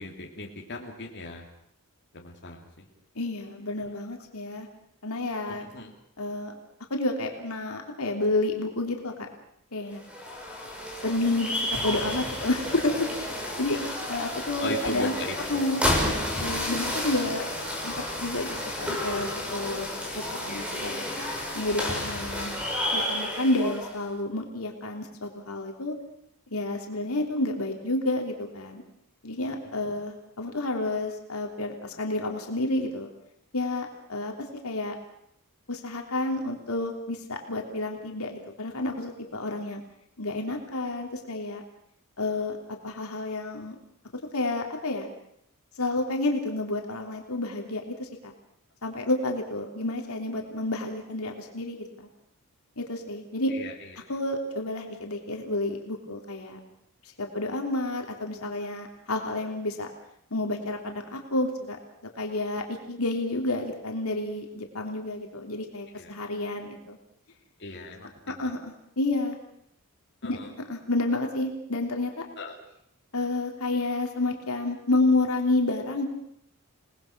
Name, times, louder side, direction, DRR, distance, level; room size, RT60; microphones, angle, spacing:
voice 1, 0.0-1.4 2.1-2.8 5.5-5.9 14.6-15.6 53.5-53.7 65.9-66.1 67.6-68.5 70.2-70.5 72.4-72.5, left 2 dB, 50° left, 0 dB, 3.1 m, -37 dB
voice 2, 3.1-4.7 5.0-5.6 6.2-6.5 6.9-9.1 9.7-10.0 11.0-13.8 14.1-15.1 15.5-15.8 16.4-17.4 17.8-18.5 18.8-19.9 20.1-21.0 21.5-22.6 22.9-25.9 26.5-28.8 29.2-33.1 33.5-34.3 34.6-34.9 35.7-39.8 40.2-41.6 42.2-42.6 42.8-43.7 44.3-45.1 45.8-48.3 48.8-52.1 52.8-53.5 54.1-56.6 57.0-59.9 60.3-61.8 62.2-67.0 68.3-69.4 70.2-70.4 70.7-72.2 73.1-76.0, left 2 dB, 75° left, 2 dB, 3.3 m, -30 dB
sound 1, 9.9-24.0, left 1 dB, 5° right, 6.1 m, -31 dB
29.0 x 19.5 x 6.1 m, 0.72 s
head